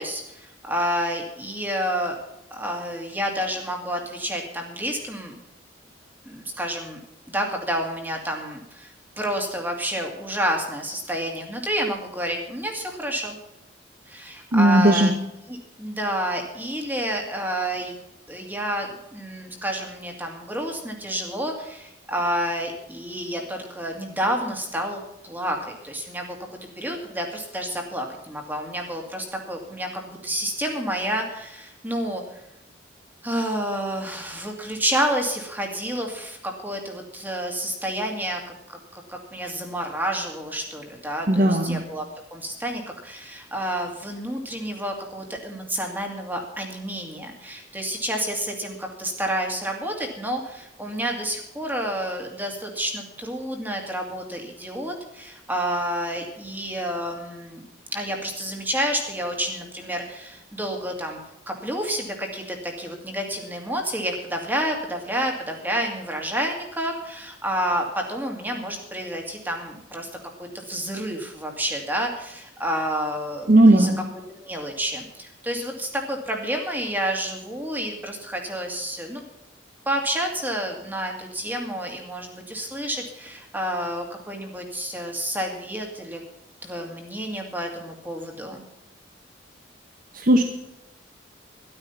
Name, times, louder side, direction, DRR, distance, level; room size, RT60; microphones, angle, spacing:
voice 1, 0.0-2.2 2.5-5.3 6.2-7.0 7.3-13.4 14.1-15.1 15.5-17.9 18.3-26.4 26.8-32.4 33.2-38.4 38.7-42.0 42.3-57.6 57.9-61.2 61.5-70.1 70.4-73.9 74.3-79.2 79.9-86.2 86.6-88.6, equal, 10° right, 2 dB, 2.4 m, -29 dB
voice 2, 14.5-15.1 41.3-41.8 73.5-74.0 90.1-90.4, right 1 dB, 50° right, 5 dB, 1.1 m, -16 dB
13.0 x 12.0 x 5.8 m, 0.88 s
head